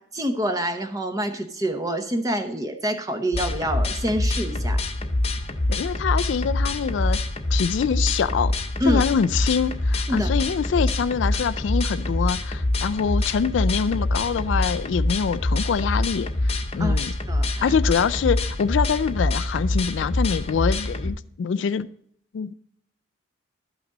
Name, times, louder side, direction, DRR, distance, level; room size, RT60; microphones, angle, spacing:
voice 1, 0.0-4.8 8.8-9.0 10.1-10.3 16.8-17.7, equal, 15° right, 0.9 m, -27 dB
sound 1, 3.3-21.1, left 1 dB, 30° left, 0.7 m, -25 dB
voice 2, 5.7-7.2 7.5-8.5 8.9-17.1 17.6-21.9 22.3-22.5, left 6 dB, 65° left, 0.3 m, -25 dB
12.5 x 6.0 x 4.0 m
head